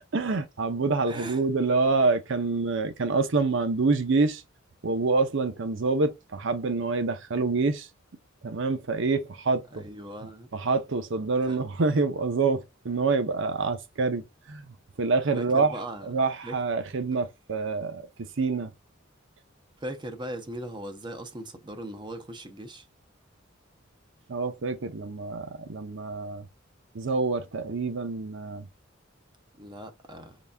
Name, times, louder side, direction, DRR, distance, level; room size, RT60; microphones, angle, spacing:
voice 1, 0.1-4.4 4.8-7.9 8.4-9.8 10.5-14.2 14.5-15.8 16.1-18.1 18.4-18.7 24.3-26.5 26.9-28.7, right 3 dB, 65° right, 0.7 m, -26 dB
voice 2, 1.1-1.4 9.7-10.5 11.5-11.6 15.3-16.1 16.4-16.6 17.1-17.2 19.8-22.9 29.6-30.4, right 1 dB, 25° right, 0.6 m, -39 dB
4.0 x 3.3 x 2.2 m
head